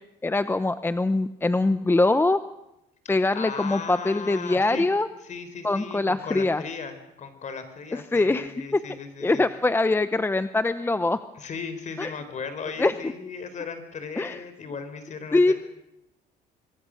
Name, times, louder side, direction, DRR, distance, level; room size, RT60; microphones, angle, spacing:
voice 1, 0.2-2.4 3.1-5.1 5.6-6.6 7.9-8.8 9.2-11.2 12.0-12.1 12.8-12.9 14.2-14.4 15.3-15.5, left 2 dB, 15° left, 12 dB, 0.8 m, -23 dB
voice 2, 3.0-4.9 5.2-9.6 11.4-15.5, left 5 dB, 45° left, 9 dB, 4.2 m, -37 dB
26.0 x 21.0 x 6.5 m, 0.87 s
cardioid pair, 110°, 17 cm